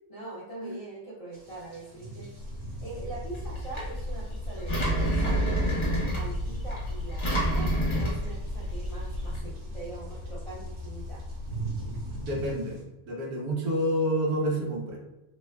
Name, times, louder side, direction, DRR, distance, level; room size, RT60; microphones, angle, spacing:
voice 1, 0.1-2.3 2.8-5.5 6.1-11.2, right 2 dB, 65° left, -7 dB, 0.3 m, -42 dB
sound 1, 1.3-12.8, right 3 dB, 50° right, 1.2 m, -44 dB
sound 2, 2.4-12.6, left 1 dB, 65° right, 0.8 m, -40 dB
Engine, 3.3-9.4, equal, 25° left, 0.7 m, -29 dB
voice 2, 12.2-12.8 13.1-15.0, equal, 90° right, -1 dB, 1.2 m, -28 dB
3.0 x 2.2 x 3.3 m, 1.0 s
omnidirectional pair, 1.5 m